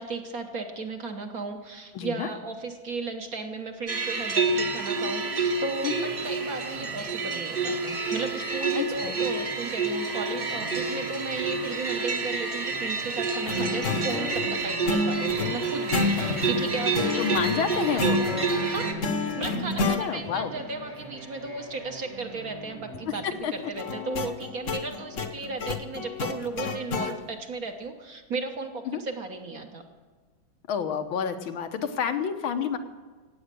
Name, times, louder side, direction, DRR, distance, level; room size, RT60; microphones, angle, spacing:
voice 1, 0.0-29.8, right 3 dB, 50° right, 4 dB, 1.4 m, -35 dB
voice 2, 1.9-2.3 5.8-6.1 8.8-9.2 16.1-16.3 17.2-18.2 20.0-20.5 23.2-23.5 28.9-29.0 30.7-32.8, left 7 dB, 80° left, 7 dB, 1.8 m, -29 dB
sound 1, 3.9-18.9, right 4 dB, 30° right, 1.2 m, -29 dB
sound 2, 4.2-23.4, right 1 dB, 80° right, 4.8 m, -45 dB
sound 3, 13.5-20.0 23.8-27.1, left 3 dB, 45° left, 1.1 m, -30 dB
17.0 x 8.7 x 6.8 m, 1.4 s
omnidirectional pair, 2.2 m